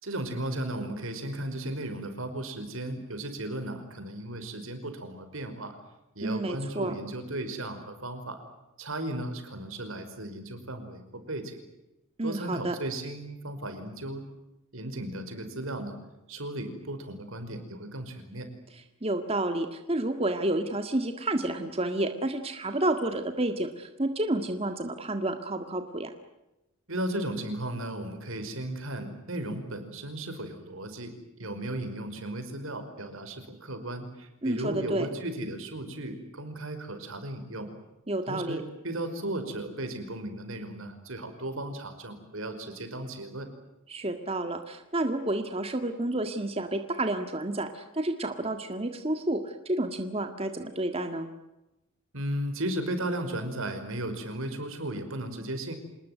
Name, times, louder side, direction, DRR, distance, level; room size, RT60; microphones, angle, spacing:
voice 1, 0.0-5.8 6.2-8.4 8.8-11.6 12.2-14.2 14.7-16.0 16.3-18.5 26.9-31.1 31.4-37.7 38.3-43.5 52.1-55.7, right 1 dB, 80° right, 8 dB, 5.3 m, -35 dB
voice 2, 6.2-6.9 12.2-12.8 18.7-26.1 34.4-35.1 38.1-38.6 43.9-51.3, right 1 dB, 30° right, 7 dB, 1.8 m, -30 dB
27.5 x 20.0 x 9.4 m, 0.94 s
head